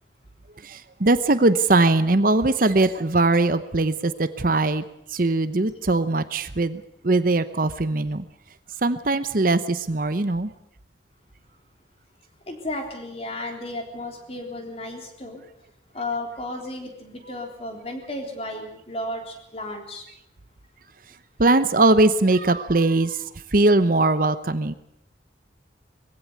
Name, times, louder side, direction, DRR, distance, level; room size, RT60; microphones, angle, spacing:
voice 1, 0.6-4.8 5.1-8.2 8.8-10.5 21.4-24.7, right 2 dB, 45° right, 12 dB, 0.8 m, -21 dB
voice 2, 12.5-15.4 15.9-20.0, left 1 dB, 30° left, 3 dB, 3.7 m, -33 dB
21.0 x 16.0 x 8.3 m, 0.78 s
head